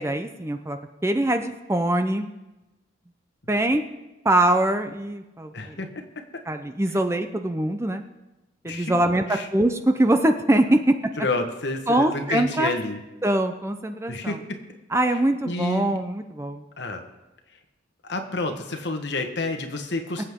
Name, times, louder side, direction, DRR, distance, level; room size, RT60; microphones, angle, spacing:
voice 1, 0.0-2.3 3.5-3.8 4.2-5.8 6.5-8.0 8.6-11.0 11.9-12.7 13.2-14.4 14.9-16.6 20.2-20.3, right 1 dB, 15° right, 7 dB, 0.5 m, -23 dB
voice 2, 5.5-5.9 8.6-9.0 9.3-9.5 10.7-10.8 11.2-13.0 14.1-14.4 15.4-16.0 16.8-17.0 18.0-20.2, left 2 dB, 65° left, 4 dB, 1.4 m, -29 dB
24.0 x 8.0 x 3.7 m, 1.1 s
head